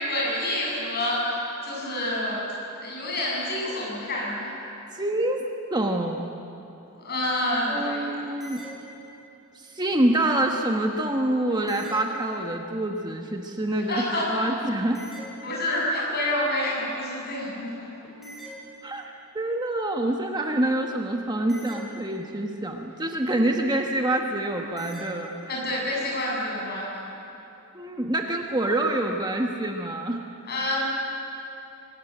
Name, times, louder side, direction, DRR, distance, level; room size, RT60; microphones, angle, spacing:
voice 1, 0.0-2.5 2.8-4.5 6.9-8.1 13.9-14.5 15.4-17.9 25.5-26.9 30.5-30.8, left 1 dB, 45° left, -3 dB, 7.4 m, -28 dB
voice 2, 4.9-6.2 7.7-8.6 9.5-14.0 14.3-15.0 18.8-25.3 27.7-30.2, right 1 dB, 20° right, 2 dB, 1.2 m, -26 dB
sound 1, 8.2-9.5 11.5-12.8 14.8-16.1 18.0-19.3 21.3-22.6 24.6-25.5, right 1 dB, ahead, 3.2 m, -45 dB
24.0 x 19.0 x 9.1 m, 2.8 s
head